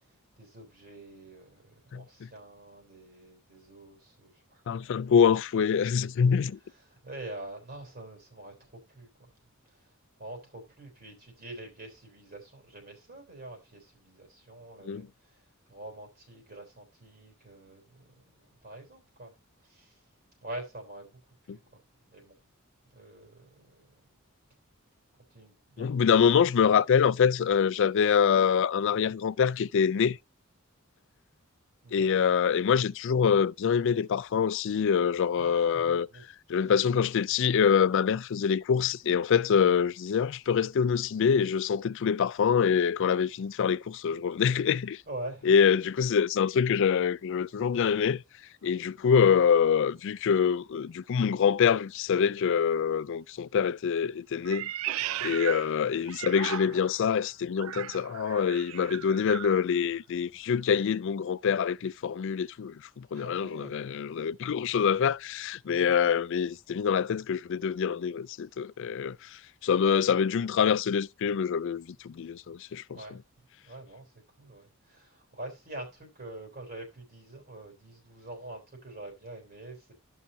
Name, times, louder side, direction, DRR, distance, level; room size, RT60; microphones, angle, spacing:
voice 1, 0.4-4.9 5.5-5.8 6.9-8.5 8.9-9.3 10.2-15.4 15.7-19.3 19.6-20.0 20.4-21.2 21.5-21.8 22.1-22.3 22.9-23.9 25.3-25.9 31.8-32.1 35.4-36.2 45.1-45.5 55.0-55.3 63.1-64.0 64.5-64.7 65.7-65.9 72.9-73.2 73.6-74.1 74.4-79.9, right 1 dB, 45° right, 3.6 m, -45 dB
voice 2, 1.9-2.3 4.7-6.6 14.8-15.1 21.5-21.6 25.8-30.2 31.9-36.1 36.5-45.0 45.4-48.2 48.6-54.7 55.2-73.0, left 7 dB, 60° left, 0.4 m, -25 dB
Meow, 54.4-57.0 57.6-59.6, right 12 dB, 75° right, 0.4 m, -36 dB
14.0 x 5.8 x 2.7 m
head